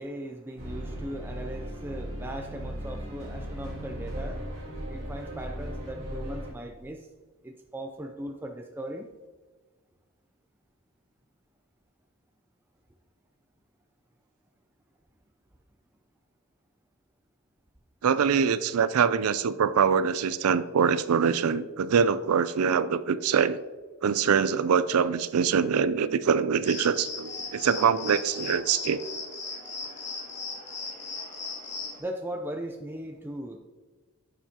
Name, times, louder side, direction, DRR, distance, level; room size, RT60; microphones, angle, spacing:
voice 1, 0.0-4.4 4.9-7.1 7.4-9.1 32.0-33.6, right 1 dB, 10° right, 3 dB, 0.4 m, -38 dB
sound 1, 0.6-6.5, equal, 60° right, 2.4 m, -37 dB
voice 2, 18.0-23.6 24.0-29.1, right 6 dB, 85° right, 15 dB, 0.4 m, -24 dB
sound 2, 26.6-32.0, left 4 dB, 30° left, 2.0 m, -37 dB
10.0 x 6.9 x 2.9 m, 1.3 s
head